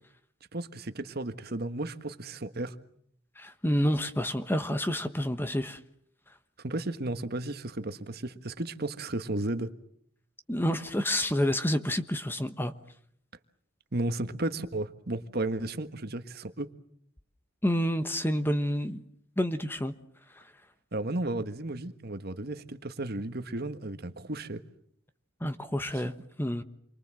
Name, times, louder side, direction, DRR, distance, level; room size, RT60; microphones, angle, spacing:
voice 1, 0.5-2.7 6.6-9.7 13.9-16.7 20.9-24.6 26.0-26.1, right 2 dB, 55° right, 1.5 m, -34 dB
voice 2, 3.4-5.8 10.5-12.7 17.6-19.0 19.4-19.9 20.4-20.5 25.4-26.1 26.4-26.6, equal, 10° left, 1.2 m, -28 dB
28.5 x 23.5 x 7.7 m
head